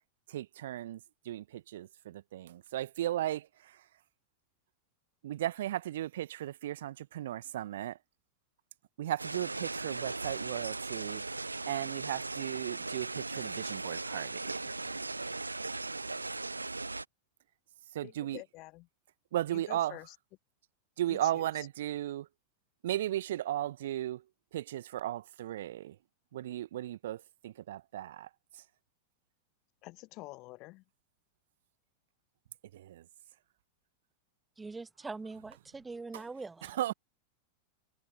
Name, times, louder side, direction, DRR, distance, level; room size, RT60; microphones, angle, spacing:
voice 1, 0.3-3.8 5.2-8.0 9.0-11.2 11.7-14.7 17.9-18.4 19.3-20.0 21.0-22.3 22.8-24.2 24.5-26.0 26.3-28.6 32.7-33.1 36.1-36.2 36.6-36.9, right 13 dB, 60° right, 1.5 m, -36 dB
sound 1, 9.2-17.0, right 3 dB, 80° right, 0.5 m, -38 dB
voice 2, 18.0-18.9 19.5-20.1 21.1-21.7 29.8-30.8, left 22 dB, 40° left, 1.1 m, -48 dB
voice 3, 34.6-36.8, right 3 dB, 10° right, 0.8 m, -43 dB
figure-of-eight pair, 90°, 0 cm